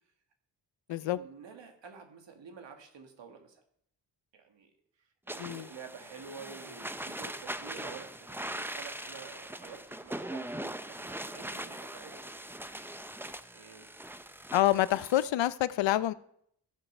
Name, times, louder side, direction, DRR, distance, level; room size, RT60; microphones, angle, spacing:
voice 1, 0.9-3.6 4.3-4.7 5.3-12.5 13.5-13.9, right 5 dB, 75° right, 1.8 m, -49 dB
sound 1, 5.3-15.2, right 1 dB, 5° right, 0.6 m, -41 dB
voice 2, 14.5-16.1, left 14 dB, 85° left, 0.6 m, -27 dB
14.5 x 5.7 x 5.4 m
cardioid pair, 55°, 43 cm